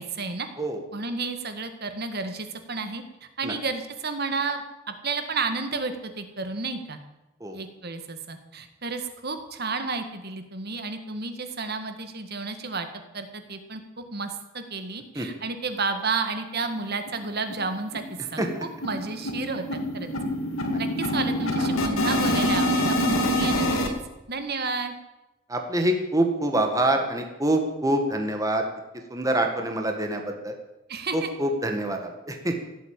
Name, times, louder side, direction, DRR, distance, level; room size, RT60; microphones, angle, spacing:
voice 1, 0.0-0.5 0.9-3.0 3.4-7.0 7.5-12.9 13.1-18.0 18.3-18.4 18.8-20.1 20.8-23.9 24.3-25.0 30.9-31.3, right 4 dB, 50° right, 7 dB, 1.8 m, -31 dB
sound 1, 16.6-16.7 17.1-17.2 17.5-17.7 17.9-23.9, equal, 85° left, 2.4 m, -26 dB
voice 2, 25.5-28.6 29.1-30.5 31.1-32.6, right 1 dB, 15° right, 3 dB, 1.8 m, -25 dB
16.5 x 8.3 x 9.0 m, 1.0 s
head